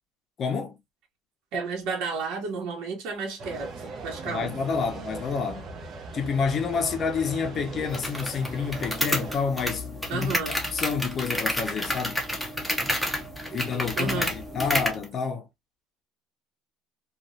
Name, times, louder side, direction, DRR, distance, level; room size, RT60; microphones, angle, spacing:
voice 1, 0.4-0.8 4.3-5.7 6.1-12.2 13.5-15.5, left 5 dB, 40° left, 0.6 m, -29 dB
voice 2, 1.5-4.5 10.1-10.6 13.5-14.3, right 4 dB, 65° right, 1.0 m, -32 dB
sound 1, 3.4-9.3, right 3 dB, 40° right, 0.8 m, -39 dB
sound 2, 7.9-15.0, equal, ahead, 0.8 m, -30 dB
2.9 x 2.3 x 2.6 m
cardioid pair, 140°, 0 cm